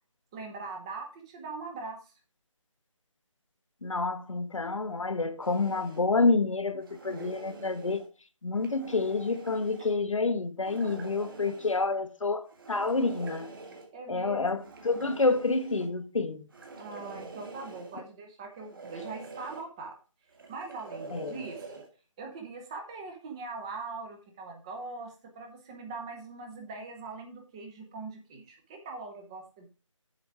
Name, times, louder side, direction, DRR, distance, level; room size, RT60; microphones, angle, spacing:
voice 1, 0.3-2.1 11.2-11.5 13.9-14.7 16.7-20.0 20.5-21.7 22.2-29.7, right 3 dB, 10° right, 0.8 m, -42 dB
voice 2, 3.8-8.0 8.4-12.4 12.7-13.5 14.1-14.6 14.8-16.4 21.1-21.4, left 3 dB, 75° left, 1.2 m, -28 dB
sound 1, 5.4-6.0 6.8-8.1 8.5-9.9 10.6-11.8 12.5-13.9 14.6-15.9 16.5-18.0 18.5-19.6 20.3-21.9, right 3 dB, 40° right, 2.2 m, -45 dB
7.9 x 6.9 x 4.7 m
figure-of-eight pair, 165°, 17 cm